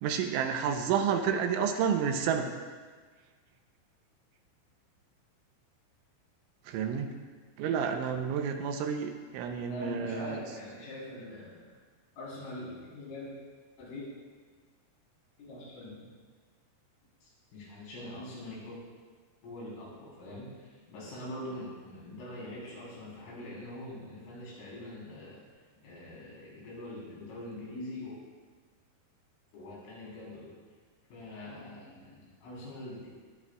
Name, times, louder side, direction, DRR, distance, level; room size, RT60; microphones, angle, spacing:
voice 1, 0.0-2.5 6.7-7.2 7.6-10.4, right 7 dB, 80° right, 4 dB, 3.1 m, -30 dB
voice 2, 9.7-11.8 12.2-13.3 13.8-14.1 15.4-16.1 17.2-18.8 19.4-25.4 25.8-28.2 29.5-30.5 31.1-33.1, left 1 dB, 75° left, -7 dB, 6.7 m, -43 dB
20.0 x 10.5 x 2.5 m, 1.5 s
omnidirectional pair, 5.8 m